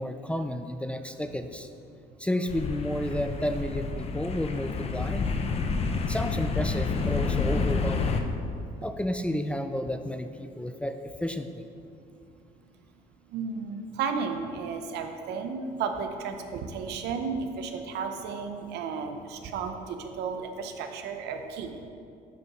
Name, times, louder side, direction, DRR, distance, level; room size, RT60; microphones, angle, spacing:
voice 1, 0.0-1.7 2.2-5.3 6.1-8.1 8.8-10.9 11.2-11.6, left 1 dB, 5° left, 7 dB, 0.3 m, -31 dB
sound 1, 2.5-8.2, left 4 dB, 35° left, 0.7 m, -29 dB
voice 2, 13.3-21.9, right 5 dB, 80° right, 6 dB, 0.8 m, -33 dB
8.1 x 4.8 x 5.8 m, 2.5 s
cardioid pair, 110°, 17 cm